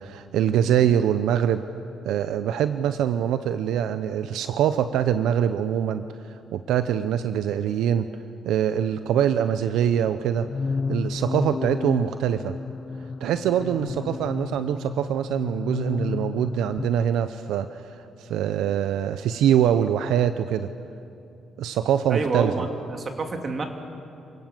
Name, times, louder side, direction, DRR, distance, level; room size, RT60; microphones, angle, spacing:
voice 1, 0.0-1.6 2.0-6.0 6.5-8.1 8.4-10.5 10.9-12.6 13.2-20.7 21.6-22.5, right 9 dB, 85° right, 11 dB, 0.7 m, -24 dB
sound 1, 10.4-17.0, left 4 dB, 40° left, 0.5 m, -31 dB
voice 2, 22.1-23.7, right 3 dB, 40° right, 4 dB, 2.8 m, -28 dB
27.5 x 17.5 x 7.7 m, 2.7 s
cardioid pair, 90°, 0 cm